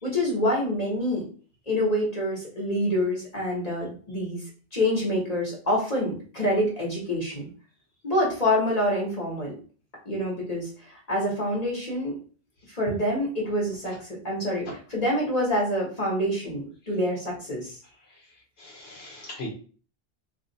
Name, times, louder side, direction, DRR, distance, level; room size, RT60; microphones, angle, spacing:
voice 1, 0.0-1.2 1.7-4.4 4.7-7.4 8.0-9.5 10.0-12.1 12.7-17.8, left 1 dB, 40° left, -4 dB, 1.2 m, -26 dB
voice 2, 18.6-19.5, left 2 dB, 80° left, -2 dB, 1.0 m, -39 dB
2.7 x 2.4 x 3.8 m, 0.40 s
omnidirectional pair, 1.0 m